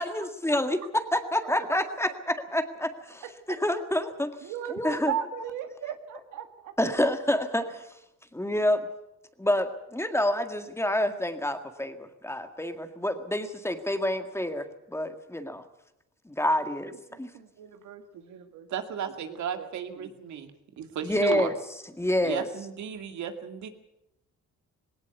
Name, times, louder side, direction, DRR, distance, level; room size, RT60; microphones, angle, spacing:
voice 1, 0.0-5.1 6.8-7.9 8.3-8.9 9.4-15.6 16.2-17.3 21.0-21.5 22.0-22.5, left 1 dB, 10° left, 8 dB, 1.8 m, -28 dB
voice 2, 4.4-6.7 16.6-16.7 17.1-18.7 19.3-20.1 20.8-20.9, right 9 dB, 85° right, 7 dB, 1.8 m, -37 dB
voice 3, 18.7-20.5 20.8-21.5 22.2-23.7, right 8 dB, 70° right, 6 dB, 2.4 m, -34 dB
19.0 x 18.0 x 8.2 m, 0.87 s
cardioid pair, 90°, 30 cm